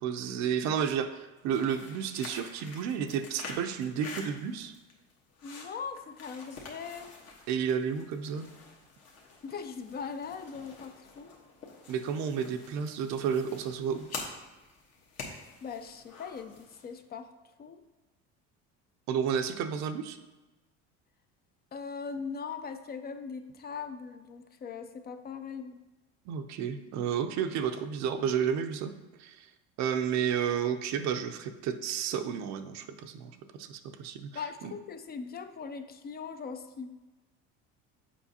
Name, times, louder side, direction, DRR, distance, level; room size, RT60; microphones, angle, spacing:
voice 1, 0.0-4.7 7.5-8.5 11.9-14.1 19.1-20.2 26.3-28.9 29.2-29.5 29.8-33.3 33.6-34.3 34.6-34.7, right 7 dB, 60° right, 9 dB, 0.6 m, -31 dB
sound 1, 1.4-17.0, left 4 dB, 55° left, 1.3 m, -47 dB
voice 2, 5.4-7.1 9.4-11.3 15.6-17.3 17.6-17.8 21.7-25.8 34.3-36.9, left 5 dB, 30° left, 8 dB, 0.5 m, -40 dB
7.3 x 5.0 x 2.8 m, 1.1 s
supercardioid pair, 105°, 31 cm